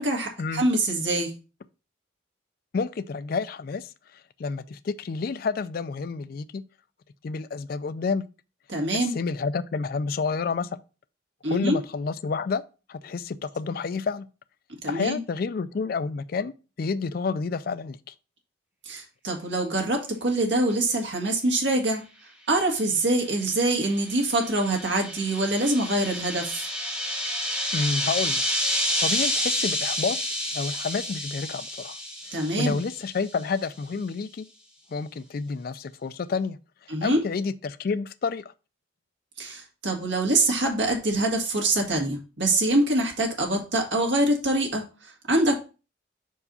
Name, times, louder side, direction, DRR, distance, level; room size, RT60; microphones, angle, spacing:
voice 1, 0.0-1.3 8.7-9.1 11.4-11.8 14.8-15.2 18.9-22.0 22.5-26.7 32.3-32.8 36.9-37.2 39.4-45.6, right 2 dB, 65° right, 1.9 m, -25 dB
voice 2, 2.7-3.9 4.4-6.6 7.2-8.2 8.9-10.8 11.5-12.6 12.9-14.3 14.9-18.1 27.7-28.4 29.0-30.2 30.5-32.0 32.6-34.5 34.9-36.6 37.0-38.5, left 4 dB, 45° left, 0.3 m, -29 dB
sound 1, 23.4-33.2, equal, 5° right, 1.0 m, -29 dB
5.4 x 4.6 x 4.1 m
head